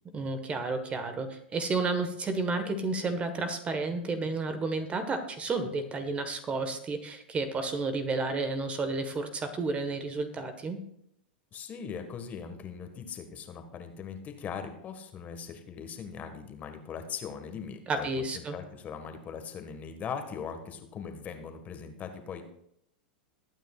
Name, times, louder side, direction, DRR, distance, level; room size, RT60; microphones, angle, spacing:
voice 1, 0.1-10.8 17.9-18.5, right 3 dB, 25° right, 8 dB, 1.4 m, -31 dB
voice 2, 11.5-22.4, left 6 dB, 30° left, 6 dB, 1.6 m, -40 dB
21.0 x 9.1 x 2.4 m, 0.74 s
hypercardioid pair, 100°, 5 cm